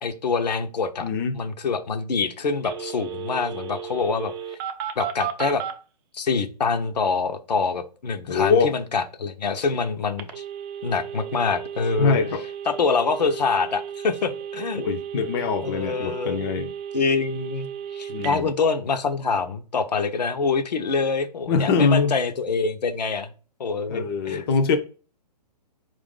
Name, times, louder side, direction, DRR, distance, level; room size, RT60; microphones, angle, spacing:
voice 1, 0.0-1.1 1.3-4.3 5.0-5.6 6.1-10.4 10.8-12.2 12.7-14.8 15.6-16.5 16.9-17.7 17.9-23.3 23.6-24.5, left 4 dB, 75° left, 0.7 m, -25 dB
voice 2, 1.0-1.4 8.3-8.7 12.0-12.4 14.8-16.7 18.1-18.5 21.5-22.1 23.9-24.8, left 5 dB, 35° left, 0.5 m, -23 dB
Telephone, 2.6-5.7 10.2-18.4, right 8 dB, 35° right, 0.6 m, -34 dB
4.6 x 2.5 x 3.7 m
hypercardioid pair, 135°, 21 cm